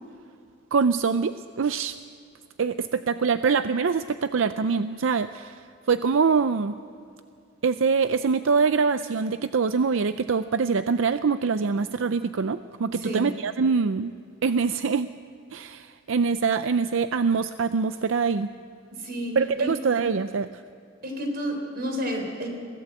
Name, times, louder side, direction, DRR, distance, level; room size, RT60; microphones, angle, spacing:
voice 1, 0.7-2.0 2.6-5.6 5.9-6.8 7.6-14.1 14.4-15.1 15.5-18.5 19.4-20.6, right 5 dB, 80° right, 12 dB, 0.5 m, -24 dB
voice 2, 12.9-13.3 18.9-19.7 21.0-22.5, equal, 50° right, 3 dB, 4.0 m, -31 dB
22.5 x 17.5 x 7.9 m, 2.4 s
head